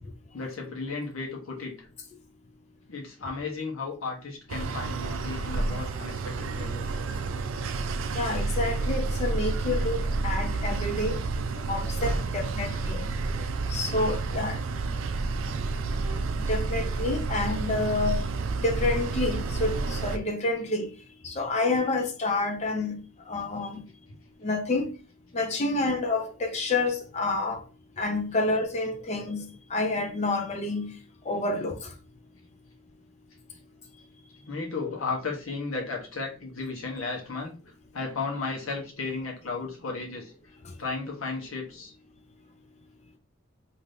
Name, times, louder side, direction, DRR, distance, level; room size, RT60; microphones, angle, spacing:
voice 1, 0.3-1.9 2.9-7.0 25.6-25.8 28.4-28.5 34.4-37.5 37.9-40.3 40.8-41.9, left 4 dB, 85° left, 0.8 m, -34 dB
sound 1, 4.5-20.2, right 3 dB, 75° right, 0.4 m, -30 dB
voice 2, 8.2-11.2 11.7-13.0 13.7-14.6 16.5-18.2 18.6-20.9 21.2-23.0 23.3-23.8 24.4-24.9 25.3-27.6 28.0-29.4 29.7-30.9 31.3-31.8, left 2 dB, 35° left, 0.5 m, -28 dB
3.3 x 2.6 x 2.6 m
head